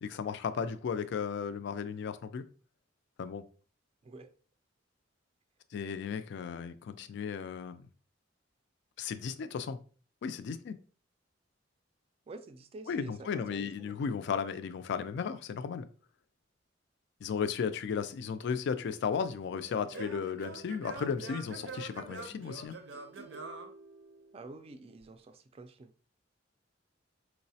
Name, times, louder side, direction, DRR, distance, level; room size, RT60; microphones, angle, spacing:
voice 1, 0.0-2.5 3.2-3.4 5.7-7.9 9.0-9.8 10.2-10.8 12.9-15.9 17.2-22.8, left 6 dB, 60° left, 0.3 m, -35 dB
voice 2, 12.3-14.0 24.3-25.9, right 3 dB, 30° right, 0.3 m, -48 dB
Singing / Plucked string instrument, 18.7-24.5, right 3 dB, 80° right, 0.6 m, -46 dB
4.6 x 2.0 x 2.7 m
head